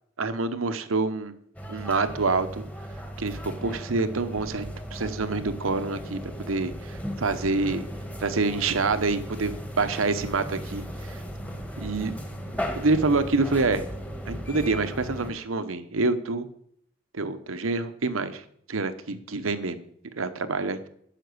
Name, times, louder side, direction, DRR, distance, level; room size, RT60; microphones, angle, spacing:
voice 1, 0.2-1.3 1.7-2.6 3.2-7.8 8.2-10.8 11.1-11.2 11.8-12.1 12.7-13.9 14.3-16.5 17.1-18.4 18.7-19.8 20.2-20.9, right 3 dB, 90° right, 11 dB, 0.9 m, -27 dB
sound 1, 1.6-15.3, equal, 5° left, 1.2 m, -36 dB
11.5 x 5.9 x 8.0 m, 0.68 s
head